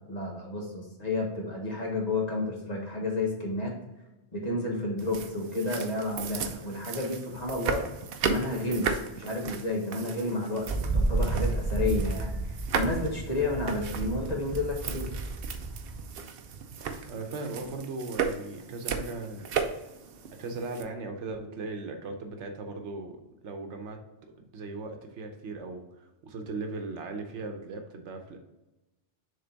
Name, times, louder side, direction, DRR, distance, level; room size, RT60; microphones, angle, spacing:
voice 1, 0.1-3.7 4.3-8.0 8.2-12.4 12.7-15.1, left 2 dB, 35° left, -1 dB, 1.5 m, -31 dB
sound 1, 5.0-20.8, right 6 dB, 60° right, 0.8 m, -36 dB
Wind, 10.6-16.1, right 2 dB, 25° right, 0.7 m, -31 dB
voice 2, 17.0-19.5 20.4-24.0 24.5-28.4, right 3 dB, 85° right, 5 dB, 1.1 m, -38 dB
6.8 x 3.7 x 3.9 m, 1.0 s
omnidirectional pair, 1.2 m